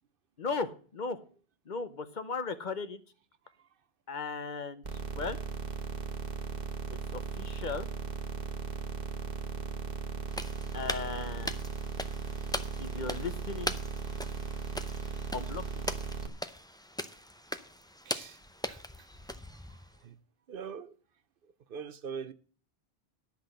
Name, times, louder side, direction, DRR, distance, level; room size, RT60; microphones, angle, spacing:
voice 1, 0.4-1.2 1.7-3.0 4.1-5.4 6.9-7.9 10.7-11.5 12.8-13.7 15.3-15.8, left 4 dB, 50° left, 0.9 m, -37 dB
sound 1, 4.8-16.3, right 5 dB, 45° right, 1.2 m, -37 dB
sound 2, 10.3-20.0, left 1 dB, 5° left, 0.4 m, -40 dB
voice 2, 18.1-18.4 18.7-19.1 20.0-20.2 20.5-20.9 21.7-22.3, right 6 dB, 65° right, 0.8 m, -42 dB
10.5 x 5.9 x 7.8 m
omnidirectional pair, 1.0 m